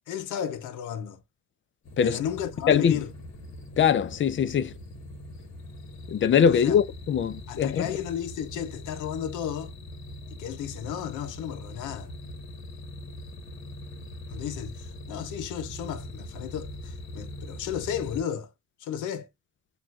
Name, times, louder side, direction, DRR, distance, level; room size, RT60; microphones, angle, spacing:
voice 1, 0.1-1.2 2.0-3.1 6.5-6.8 7.5-9.7 10.4-12.1 14.3-18.5 18.8-19.3, left 9 dB, 85° left, 0.7 m, -33 dB
sound 1, 1.8-18.2, left 1 dB, 65° left, 1.4 m, -42 dB
voice 2, 2.7-3.0 3.8-4.7 6.1-7.9, left 8 dB, 40° left, 0.5 m, -22 dB
5.9 x 2.4 x 2.4 m
cardioid pair, 90°, 30 cm